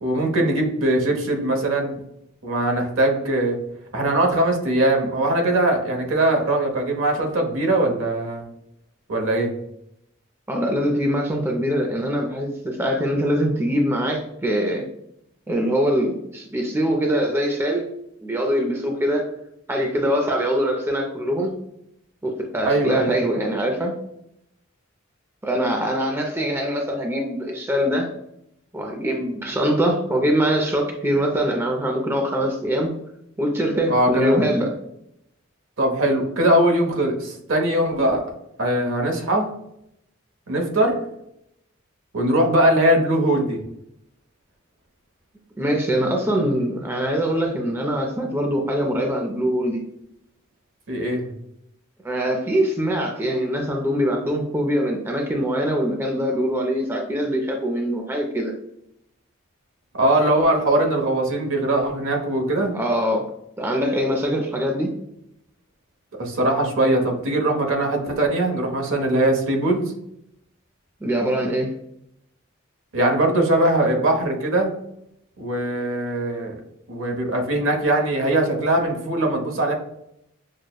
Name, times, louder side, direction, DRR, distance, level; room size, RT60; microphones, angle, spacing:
voice 1, 0.0-2.0 2.4-3.6 3.9-8.4 9.1-9.5 22.6-23.1 33.9-34.5 35.8-38.2 38.6-39.5 40.5-41.0 42.1-43.6 50.9-51.3 60.0-62.7 66.2-69.9 72.9-74.7 75.4-76.6 76.9-79.7, right 1 dB, 70° right, 2 dB, 0.9 m, -21 dB
voice 2, 10.5-14.9 15.5-17.9 18.2-19.3 19.7-21.5 22.2-23.9 25.4-28.1 28.7-32.9 33.4-34.7 45.6-49.8 52.0-58.5 62.7-63.3 63.6-64.9 71.0-71.7, equal, 10° right, 1 dB, 0.4 m, -23 dB
6.1 x 2.1 x 2.3 m, 0.78 s
head